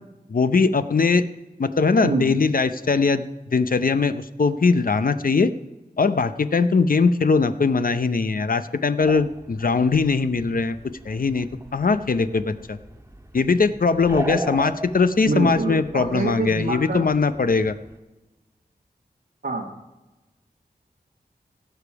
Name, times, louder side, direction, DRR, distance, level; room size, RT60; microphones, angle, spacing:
voice 1, 0.3-1.2 1.6-5.5 6.0-10.8 11.1-11.5 11.7-12.8 13.3-17.7, left 4 dB, 60° left, 11 dB, 0.7 m, -21 dB
sound 1, 9.0-18.0, right 1 dB, 15° right, 1.5 m, -37 dB
voice 2, 15.2-17.0 19.4-19.7, right 3 dB, 85° right, -2 dB, 1.4 m, -25 dB
17.0 x 7.0 x 4.7 m, 1.1 s
wide cardioid pair, 70°, 17 cm